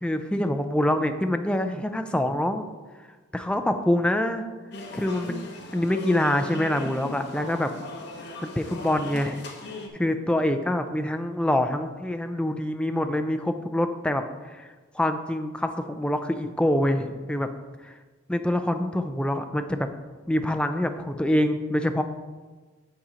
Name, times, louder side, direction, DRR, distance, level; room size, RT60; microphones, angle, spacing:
voice 1, 0.0-2.7 3.3-4.5 4.9-7.7 8.4-9.4 9.9-17.5 17.8-17.9 18.3-19.9 20.3-22.0, left 1 dB, 5° left, 7 dB, 0.4 m, -25 dB
sound 1, 4.7-9.9, left 1 dB, 55° left, 1.0 m, -38 dB
8.7 x 4.2 x 5.1 m, 1.3 s
head